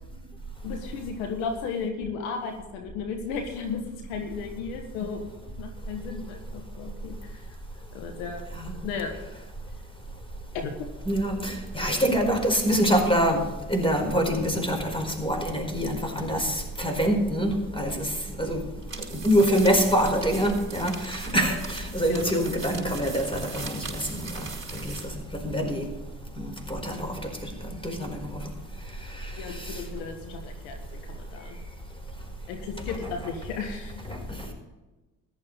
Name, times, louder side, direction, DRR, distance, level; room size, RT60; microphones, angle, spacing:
voice 1, 0.6-5.3 5.6-7.5 7.9-8.4 8.8-9.1 10.5-10.7 22.1-22.2 24.8-24.9 29.3-30.7 31.1-31.6 32.5-34.0, left 5 dB, 85° left, 4 dB, 1.6 m, -34 dB
voice 2, 11.1-13.4 13.7-18.1 18.4-18.6 19.1-25.1 25.4-25.9 26.4-28.4 29.1-29.8 34.1-34.5, equal, 15° left, 3 dB, 4.8 m, -26 dB
sound 1, 18.8-25.2, right 4 dB, 30° right, 5.0 m, -40 dB
14.5 x 11.5 x 4.1 m, 1.1 s
hypercardioid pair, 60°, 40 cm